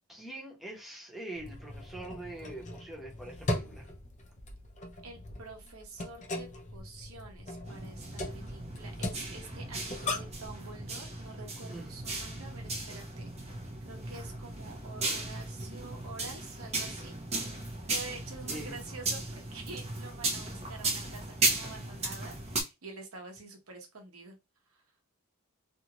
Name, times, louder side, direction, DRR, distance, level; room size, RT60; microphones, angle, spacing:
voice 1, 0.1-3.9 11.7-11.9 18.5-18.8, right 1 dB, ahead, 1.0 m, -43 dB
sound 1, 1.4-10.5, left 1 dB, 35° left, 0.6 m, -39 dB
voice 2, 5.0-13.3 13.8-17.1 17.9-24.4, right 3 dB, 80° right, 1.0 m, -47 dB
sound 2, 7.6-22.6, right 2 dB, 30° right, 0.8 m, -36 dB
2.7 x 2.5 x 2.9 m
head